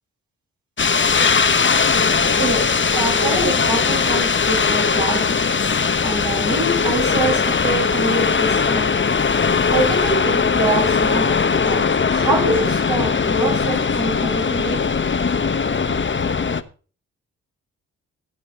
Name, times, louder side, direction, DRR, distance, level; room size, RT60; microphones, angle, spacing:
sound 1, 0.8-16.6, left 5 dB, 35° left, 1.1 m, -19 dB
voice 1, 2.4-9.0 9.2-14.9, right 2 dB, 70° right, 7.7 m, -25 dB
16.5 x 5.7 x 5.7 m
hypercardioid pair, 40°, 35 cm